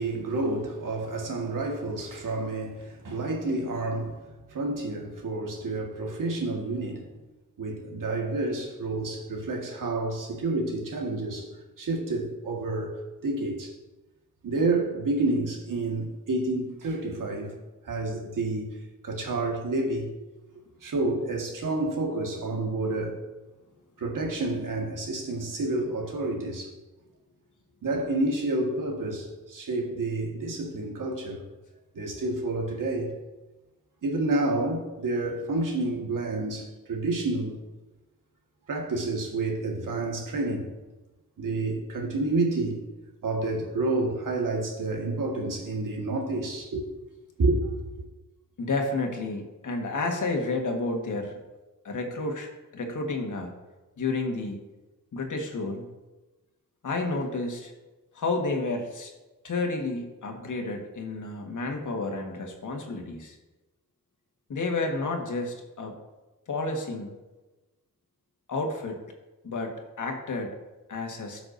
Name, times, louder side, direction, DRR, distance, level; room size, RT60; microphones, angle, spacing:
voice 1, 0.0-4.2 4.5-7.1 7.6-11.5 11.8-13.0 13.2-13.7 14.4-17.5 17.8-18.7 19.0-20.1 20.8-23.1 24.0-26.7 27.8-31.4 31.9-33.1 34.0-37.6 38.7-40.7 41.4-42.8 43.2-46.8 47.4-48.1, right 2 dB, 75° right, 1.7 m, -29 dB
voice 2, 48.6-51.4 51.8-53.5 54.0-54.6 55.1-55.9 56.8-57.7 58.1-59.1 59.4-63.4 64.5-66.0 66.5-67.2 68.5-69.0 69.4-70.5 70.9-71.4, left 3 dB, 65° left, 1.5 m, -31 dB
16.0 x 6.0 x 2.7 m
wide cardioid pair, 90°, 32 cm